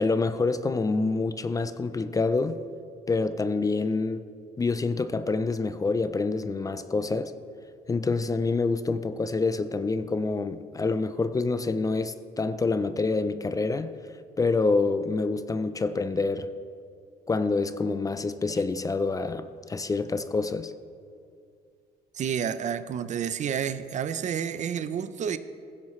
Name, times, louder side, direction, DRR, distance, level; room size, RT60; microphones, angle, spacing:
voice 1, 0.0-2.6 3.1-4.3 4.6-7.3 7.9-13.9 14.4-16.5 17.3-20.7, left 3 dB, 20° left, 0.5 m, -27 dB
voice 2, 22.1-25.4, right 8 dB, 45° right, 0.6 m, -30 dB
16.0 x 15.5 x 3.2 m
cardioid pair, 110°, 17 cm